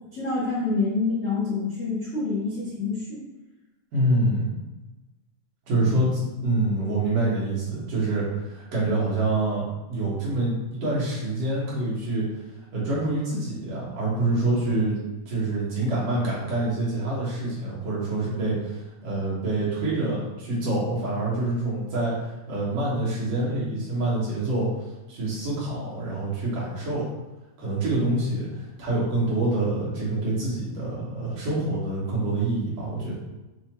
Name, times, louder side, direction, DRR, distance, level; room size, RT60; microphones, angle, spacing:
voice 1, 0.1-3.2, left 3 dB, 65° left, -10 dB, 0.7 m, -27 dB
voice 2, 3.9-4.5 5.7-9.6 9.9-12.3 12.7-15.0 15.3-24.7 25.1-27.1 27.6-33.2, right 2 dB, 60° right, -7 dB, 2.4 m, -26 dB
6.4 x 2.8 x 3.0 m, 1.1 s
omnidirectional pair, 3.3 m